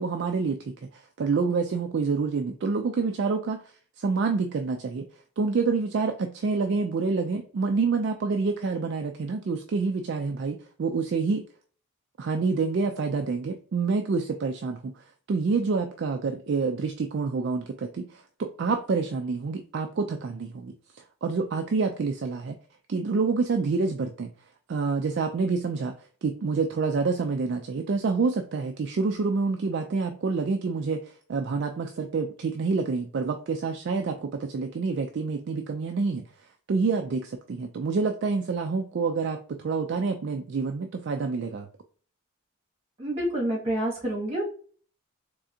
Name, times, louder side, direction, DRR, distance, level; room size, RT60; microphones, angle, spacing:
voice 1, 0.0-3.6 4.0-5.1 5.4-11.5 12.2-22.6 22.9-24.3 24.7-25.9 26.2-36.2 36.7-41.7, right 4 dB, 50° right, 5 dB, 0.3 m, -27 dB
voice 2, 43.0-44.4, right 1 dB, 30° right, -3 dB, 1.8 m, -28 dB
3.7 x 3.3 x 2.7 m, 0.43 s
head